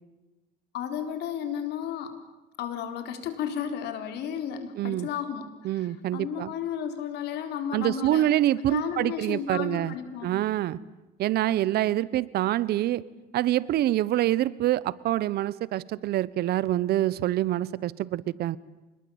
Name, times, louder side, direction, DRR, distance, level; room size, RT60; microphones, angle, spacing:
voice 1, 0.7-2.1 2.6-8.3 8.7-10.5, left 8 dB, 80° left, 8 dB, 4.1 m, -33 dB
voice 2, 4.8-5.1 5.6-6.5 7.7-9.9 10.2-10.8 11.2-13.0 13.3-18.6, right 13 dB, 70° right, 20 dB, 1.0 m, -26 dB
26.0 x 21.0 x 8.8 m, 1.1 s
cardioid pair, 110°, 17 cm